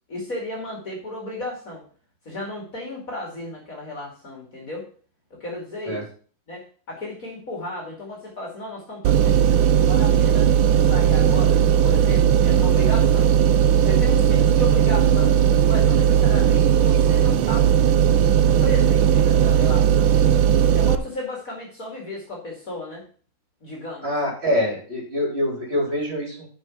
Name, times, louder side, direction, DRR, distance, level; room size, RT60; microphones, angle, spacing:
voice 1, 0.1-1.8 2.2-4.9 5.3-6.0 6.5-13.3 13.8-17.7 18.6-20.1 20.7-23.0 23.6-24.1, left 2 dB, 45° left, -2 dB, 2.8 m, -34 dB
sound 1, 9.0-21.0, right 9 dB, 80° right, 1.4 m, -17 dB
voice 2, 24.0-26.5, left 1 dB, 30° right, -1 dB, 4.3 m, -25 dB
7.4 x 5.8 x 7.1 m, 0.43 s
omnidirectional pair, 2.1 m